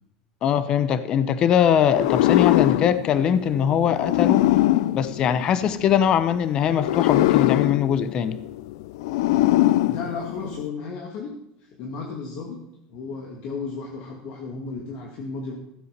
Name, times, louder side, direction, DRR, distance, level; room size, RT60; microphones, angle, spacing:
voice 1, 0.4-4.4 4.9-8.4, left 8 dB, 35° left, 14 dB, 0.8 m, -21 dB
sound 1, 1.9-6.0 6.7-10.7, left 15 dB, 85° left, 0.5 m, -22 dB
voice 2, 9.9-12.6 12.9-15.6, left 4 dB, 50° left, 1 dB, 2.2 m, -34 dB
15.0 x 7.8 x 6.6 m, 0.84 s
cardioid pair, 155°, 2 cm